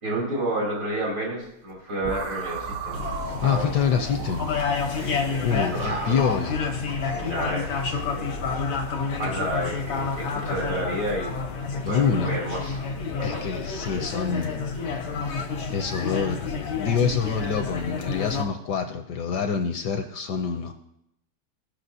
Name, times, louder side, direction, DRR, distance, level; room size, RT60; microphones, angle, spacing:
voice 1, 0.0-3.0 3.3-3.7 4.9-6.2 7.1-8.4 9.1-11.4 11.7-12.9 13.2-13.5, right 1 dB, 80° right, -3 dB, 3.8 m, -31 dB
sound 1, 2.0-5.2, right 6 dB, 65° right, 1.1 m, -36 dB
sound 2, 2.9-18.4, left 4 dB, 90° left, 1.9 m, -29 dB
voice 2, 3.2-4.5 5.4-6.6 11.8-12.4 13.2-14.7 15.7-16.5 16.7-20.7, left 6 dB, 70° left, 6 dB, 1.0 m, -26 dB
16.5 x 5.9 x 2.7 m, 0.80 s
omnidirectional pair, 2.2 m